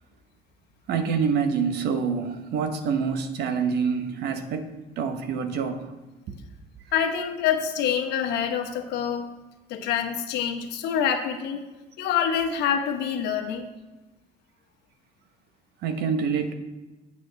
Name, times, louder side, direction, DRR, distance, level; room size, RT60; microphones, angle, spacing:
voice 1, 0.9-4.7 5.0-5.9 6.3-6.4 15.8-16.5, right 6 dB, 75° right, 8 dB, 1.0 m, -26 dB
voice 2, 6.9-9.3 9.7-11.6 12.0-13.7, left 8 dB, 85° left, 4 dB, 1.1 m, -26 dB
8.6 x 7.3 x 3.9 m, 1.1 s
cardioid pair, 110°, 17 cm